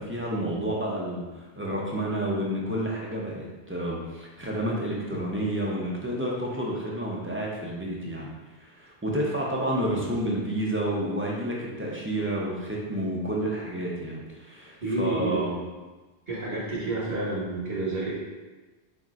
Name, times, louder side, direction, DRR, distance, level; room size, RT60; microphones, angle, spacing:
voice 1, 0.0-8.3 8.6-15.6, right 1 dB, 15° right, -4 dB, 0.6 m, -30 dB
voice 2, 14.8-15.7 16.3-18.1, right 2 dB, 65° right, -7 dB, 1.4 m, -29 dB
4.4 x 4.3 x 2.5 m, 1.2 s
omnidirectional pair, 1.1 m